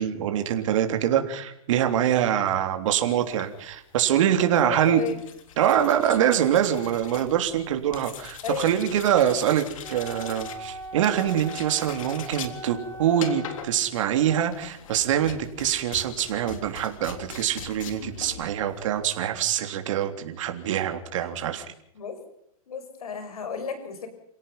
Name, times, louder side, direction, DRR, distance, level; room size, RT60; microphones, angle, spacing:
voice 1, 0.0-5.0 5.6-21.6, right 10 dB, 55° right, 6 dB, 3.4 m, -24 dB
sound 1, 3.2-19.2, left 8 dB, 60° left, 3.6 m, -42 dB
voice 2, 4.5-5.2 7.6-7.8 8.4-8.7 22.0-22.2 22.7-24.1, left 6 dB, 80° left, 9 dB, 6.3 m, -33 dB
Wind instrument woodwind instrument, 9.8-13.7, right 1 dB, 15° left, 4.8 m, -40 dB
29.0 x 17.5 x 5.7 m, 0.76 s
hypercardioid pair, 145°, 19 cm